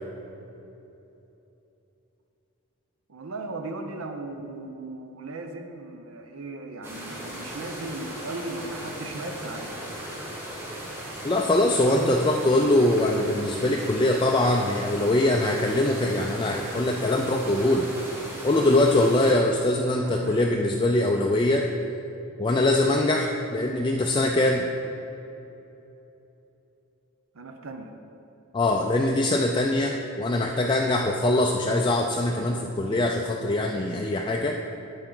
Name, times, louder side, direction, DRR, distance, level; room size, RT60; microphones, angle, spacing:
voice 1, 3.1-9.8 11.9-12.2 20.1-20.4 27.3-27.9, right 2 dB, 65° right, 5 dB, 0.6 m, -37 dB
sound 1, 6.8-19.3, equal, 10° right, 1.4 m, -37 dB
voice 2, 11.2-17.9 18.4-21.7 22.4-24.7 28.5-34.6, left 1 dB, 20° left, 1 dB, 0.4 m, -23 dB
10.5 x 7.9 x 3.9 m, 3.0 s
head